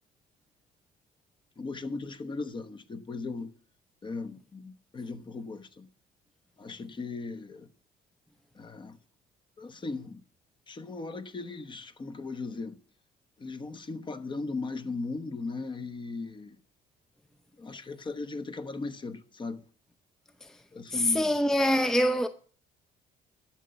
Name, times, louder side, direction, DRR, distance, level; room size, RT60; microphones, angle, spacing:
voice 1, 1.6-3.5 4.0-5.9 6.6-7.7 8.5-9.0 9.6-10.2 10.7-12.8 13.4-16.6 17.6-19.6 20.7-21.4, left 3 dB, 30° left, 1.1 m, -37 dB
voice 2, 20.9-22.3, left 1 dB, 5° left, 0.6 m, -24 dB
12.0 x 7.0 x 6.7 m
cardioid pair, 110°, 17 cm